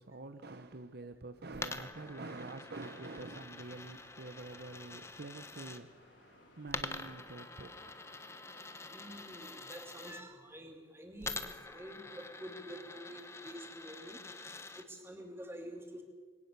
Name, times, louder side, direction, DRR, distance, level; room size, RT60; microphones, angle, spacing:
voice 1, 0.0-8.0, right 2 dB, 55° right, 9 dB, 0.9 m, -47 dB
Coin (dropping), 1.5-5.8 6.7-10.2 11.2-14.8, left 3 dB, 15° left, 1.0 m, -46 dB
sound 1, 2.9-9.7, left 2 dB, 65° left, 4.8 m, -62 dB
voice 2, 8.9-14.5 14.7-16.0, equal, 10° right, 2 dB, 3.1 m, -48 dB
22.0 x 18.5 x 6.9 m, 1.5 s
head